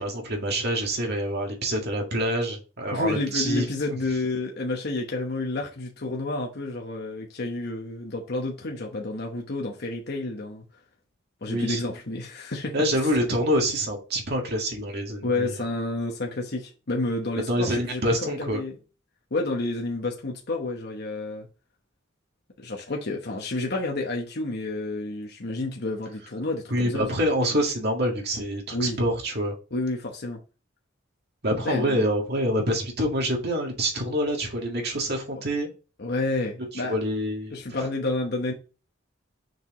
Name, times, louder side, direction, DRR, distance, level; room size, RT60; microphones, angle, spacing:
voice 1, 0.0-3.7 11.5-11.8 12.7-15.6 17.5-18.6 26.7-29.5 31.4-35.7 36.9-37.6, equal, 60° right, 1.9 m, -26 dB
voice 2, 2.9-10.7 11.4-13.1 15.2-18.8 19.3-21.5 22.6-27.1 28.7-29.0 29.7-30.4 31.6-32.1 36.0-37.0 37.5-38.5, left 2 dB, 60° left, 1.0 m, -30 dB
6.5 x 4.7 x 3.1 m
head